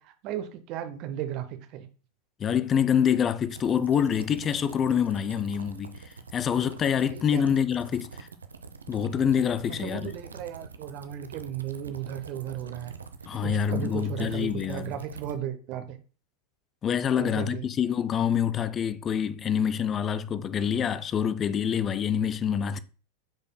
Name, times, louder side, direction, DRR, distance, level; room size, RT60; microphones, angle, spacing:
voice 1, 0.0-1.9 7.1-7.5 9.7-12.9 13.4-16.0 17.2-17.7, right 10 dB, 40° right, 0.8 m, -35 dB
voice 2, 2.4-6.0 6.3-8.3 8.9-10.1 13.3-14.9 16.8-22.8, left 8 dB, 25° left, 0.4 m, -26 dB
sound 1, 3.5-15.3, right 5 dB, 75° right, 0.6 m, -45 dB
10.5 x 5.2 x 2.2 m
figure-of-eight pair, 90°, 0 cm